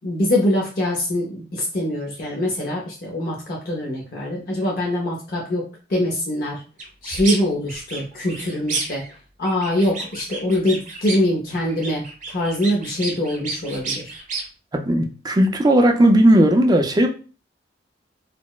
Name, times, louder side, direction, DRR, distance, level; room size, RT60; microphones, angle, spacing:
voice 1, 0.0-5.6 5.9-6.6 7.0-9.0 9.4-14.1, left 1 dB, 55° left, -2 dB, 0.6 m, -23 dB
sound 1, 6.8-7.4 7.7-9.1 9.4-11.3 11.6-14.4, right 3 dB, 45° right, 0.7 m, -30 dB
voice 2, 14.7-17.1, right 1 dB, 20° right, 3 dB, 0.4 m, -16 dB
4.0 x 2.0 x 2.3 m, 0.36 s
head